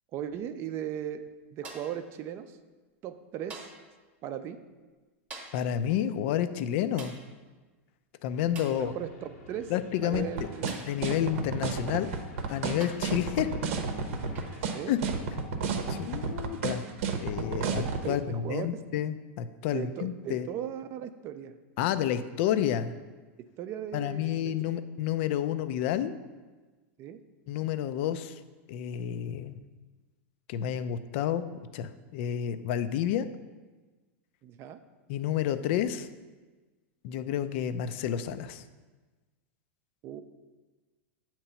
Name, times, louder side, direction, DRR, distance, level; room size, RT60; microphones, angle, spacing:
voice 1, 0.1-2.6 3.0-3.7 4.2-4.6 8.7-9.7 10.0-10.8 14.7-14.9 17.7-18.8 19.7-21.6 23.6-24.5 27.0-27.2 34.4-34.8 40.0-40.2, right 10 dB, 35° right, 10 dB, 0.4 m, -37 dB
sound 1, 1.6-2.0 3.5-3.9 5.3-5.7 7.0-7.3 8.5-8.9 10.7-11.0 12.1-12.2 12.8-13.2 14.3-14.6 16.2-16.4, right 3 dB, 20° right, 0.9 m, -45 dB
voice 2, 5.5-7.1 8.2-8.9 9.7-10.5 10.9-12.1 12.5-13.5 14.9-15.0 15.9-16.8 17.2-20.5 21.8-22.9 23.9-26.1 27.5-28.4 28.7-29.6 30.5-33.3 35.1-36.1 37.0-38.6, left 10 dB, 55° left, 12 dB, 0.4 m, -30 dB
sound 2, 8.3-14.9, left 1 dB, 85° left, 1.6 m, -50 dB
sound 3, 10.1-18.0, right 5 dB, 65° right, 0.7 m, -31 dB
7.6 x 3.0 x 5.6 m, 1.3 s
supercardioid pair, 140°, 7 cm